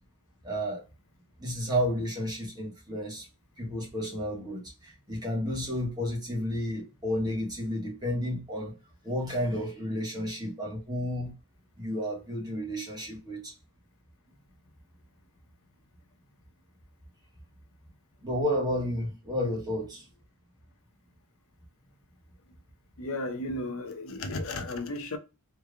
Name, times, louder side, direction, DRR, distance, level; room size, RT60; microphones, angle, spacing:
voice 1, 0.4-0.8 1.4-3.3 3.6-8.8 9.0-11.3 11.8-13.5 18.2-20.1, equal, 20° right, 1.5 m, -31 dB
voice 2, 23.0-25.2, left 2 dB, 65° left, 0.7 m, -34 dB
3.3 x 3.3 x 2.4 m
head